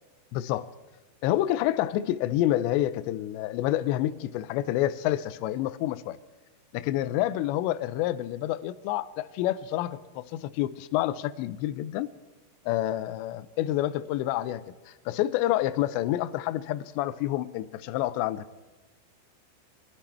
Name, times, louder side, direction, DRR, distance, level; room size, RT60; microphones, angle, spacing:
voice 1, 0.3-0.7 1.2-6.2 6.7-12.1 12.7-18.4, left 14 dB, 85° left, 2.6 m, -28 dB
22.0 x 13.5 x 4.4 m
omnidirectional pair, 5.6 m